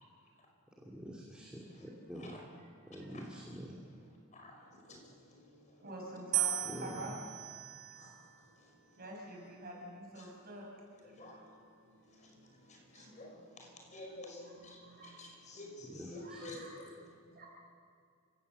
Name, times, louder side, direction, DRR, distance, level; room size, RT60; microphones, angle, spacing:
voice 1, 0.8-2.4 2.9-3.8 6.7-7.2 15.9-16.4, equal, 5° right, -2 dB, 2.5 m, -46 dB
voice 2, 1.3-1.9 2.1-2.4 3.1-3.3 3.8-5.9 7.9-9.0 10.2-10.4 10.9-17.1, left 1 dB, 35° left, 1 dB, 5.5 m, -52 dB
voice 3, 5.8-7.2 9.0-10.7 12.4-13.1 14.8-15.2 16.2-16.8 17.3-17.5, right 1 dB, 45° right, -1 dB, 6.8 m, -47 dB
sound 1, 6.3-8.5 9.3-9.9, right 13 dB, 90° right, 1.8 m, -38 dB
29.5 x 17.5 x 7.8 m, 2.3 s
head